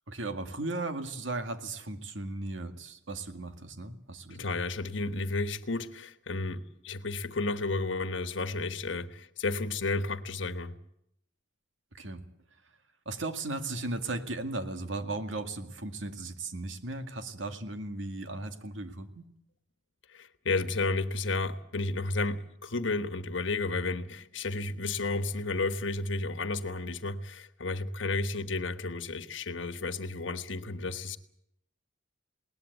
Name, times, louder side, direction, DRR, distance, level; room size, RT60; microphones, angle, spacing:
voice 1, 0.1-4.5 11.9-12.2 13.1-19.2, right 2 dB, 85° right, 8 dB, 2.1 m, -36 dB
voice 2, 4.3-10.7 20.1-31.2, left 3 dB, 80° left, 12 dB, 1.3 m, -32 dB
20.5 x 19.0 x 8.2 m, 0.77 s
head